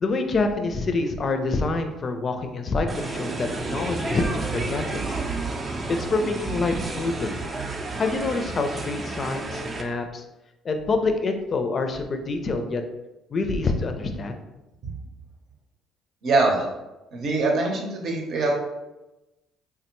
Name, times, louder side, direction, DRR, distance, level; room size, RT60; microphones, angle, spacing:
voice 1, 0.0-5.0 5.9-7.4 7.9-10.2 10.6-12.8 13.3-14.4, left 3 dB, 45° left, 6 dB, 0.4 m, -26 dB
sound 1, 2.9-9.8, right 3 dB, 30° right, 0.5 m, -31 dB
voice 2, 16.2-16.7 17.1-18.6, right 3 dB, 60° right, 0 dB, 0.8 m, -23 dB
3.4 x 2.1 x 3.0 m, 1.0 s
supercardioid pair, 65°, 0 cm